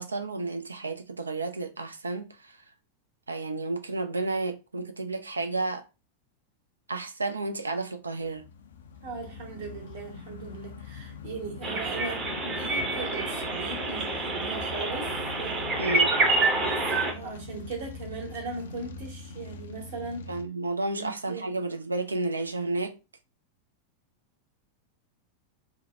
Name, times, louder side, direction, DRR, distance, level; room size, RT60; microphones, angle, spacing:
voice 1, 0.0-2.6 3.3-5.8 6.9-8.4 15.8-16.1 20.3-22.9, right 2 dB, 80° right, 0.4 m, -31 dB
sound 1, 8.2-20.4, left 5 dB, 65° left, 0.4 m, -43 dB
voice 2, 9.0-15.1 15.4-15.7 16.5-20.3 20.9-21.5, right 4 dB, 55° right, 1.1 m, -38 dB
sound 2, 11.6-17.1, right 2 dB, 25° right, 0.7 m, -27 dB
2.8 x 2.1 x 3.4 m
figure-of-eight pair, 90°, 0 cm